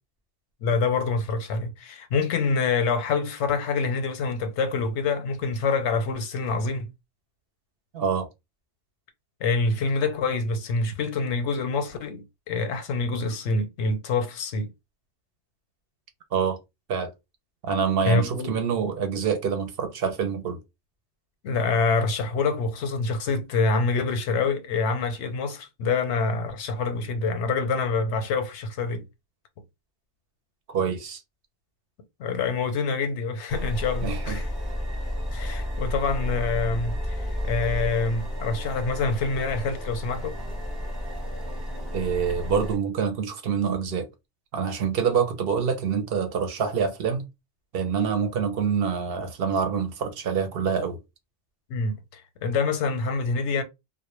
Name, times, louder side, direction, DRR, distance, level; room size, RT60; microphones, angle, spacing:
voice 1, 0.6-6.9 9.4-14.7 18.0-18.6 21.4-29.0 32.2-34.5 35.3-40.4 51.7-53.6, left 4 dB, 90° left, 0.9 m, -26 dB
voice 2, 7.9-8.3 16.3-16.6 16.9-17.1 17.6-20.6 30.7-31.2 34.0-34.4 41.9-44.1 44.5-47.3 47.7-51.0, right 6 dB, 65° right, 0.7 m, -26 dB
sound 1, 33.5-42.8, equal, 25° right, 0.8 m, -31 dB
2.1 x 2.0 x 3.0 m
omnidirectional pair, 1.2 m